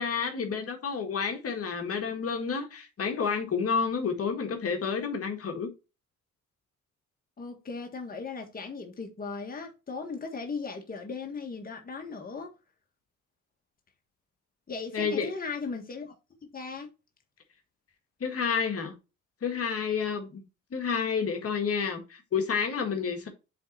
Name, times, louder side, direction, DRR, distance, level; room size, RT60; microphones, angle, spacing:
voice 1, 0.0-5.7 14.9-15.3 18.2-18.9 19.4-20.4 20.7-23.3, left 6 dB, 50° left, 1.7 m, -30 dB
voice 2, 7.4-12.5 14.7-16.1 16.5-16.9, left 4 dB, 30° left, 1.6 m, -37 dB
7.7 x 3.8 x 4.0 m
cardioid pair, 90°, 30 cm